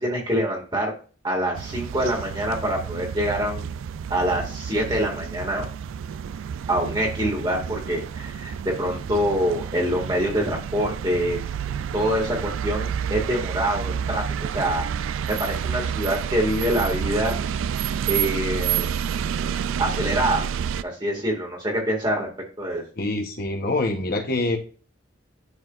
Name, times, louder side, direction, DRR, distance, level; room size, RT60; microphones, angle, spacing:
voice 1, 0.0-0.9 1.2-3.8 4.1-5.6 6.7-11.4 11.9-14.2 14.5-14.8 15.3-17.3 18.1-18.9 19.8-20.5 20.8-22.3 22.6-22.8, equal, 20° right, 0 dB, 1.9 m, -25 dB
sound 1, 1.5-20.8, right 8 dB, 80° right, 0.3 m, -29 dB
voice 2, 23.0-24.6, left 2 dB, 50° left, 4 dB, 1.0 m, -25 dB
11.0 x 4.7 x 2.5 m, 0.38 s
head